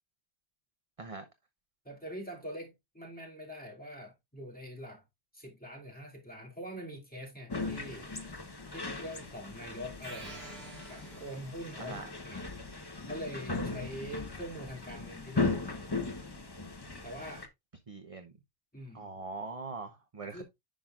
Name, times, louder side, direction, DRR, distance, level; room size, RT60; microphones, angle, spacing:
voice 1, 1.8-5.0 5.3-8.1 8.7-10.5 10.9-12.6 13.1-16.0 17.0-17.5 18.7-19.1 20.3-20.4, equal, 10° left, 2.4 m, -44 dB
sound 1, 7.5-17.5, left 3 dB, 25° left, 0.9 m, -38 dB
sound 2, 10.0-11.9, right 2 dB, 65° right, 2.2 m, -49 dB
voice 2, 11.8-12.1 17.9-18.3 18.9-20.4, right 3 dB, 35° right, 0.8 m, -42 dB
10.5 x 5.7 x 2.4 m
omnidirectional pair, 1.1 m